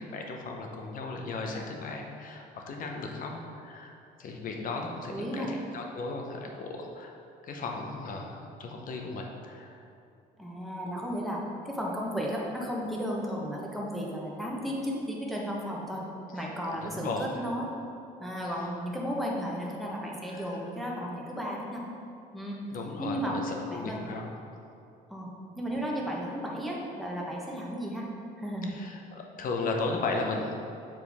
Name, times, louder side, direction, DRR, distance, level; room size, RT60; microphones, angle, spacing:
voice 1, 0.0-7.2 7.4-9.8 16.3-16.4 16.7-17.4 20.3-20.4 22.7-24.3 24.5-24.6 28.6-30.5, left 3 dB, 55° left, 2 dB, 0.9 m, -36 dB
voice 2, 5.1-5.5 10.4-16.0 16.3-17.7 18.2-21.8 22.3-23.4 23.7-24.0 25.1-25.3 25.6-28.1 28.4-28.7, equal, ahead, -4 dB, 1.1 m, -34 dB
7.4 x 4.4 x 3.6 m, 2.5 s
cardioid pair, 110°, 17 cm